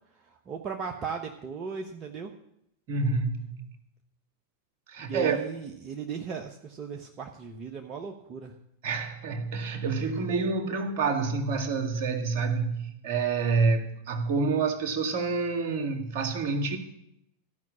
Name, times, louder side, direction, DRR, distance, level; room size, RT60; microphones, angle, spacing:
voice 1, 0.3-2.3 5.0-8.5, right 6 dB, 30° right, 3 dB, 1.2 m, -37 dB
voice 2, 2.9-3.7 4.9-5.4 8.8-16.8, right 4 dB, 50° right, 6 dB, 1.9 m, -28 dB
14.5 x 6.1 x 8.5 m, 0.77 s
figure-of-eight pair, 90°, 0 cm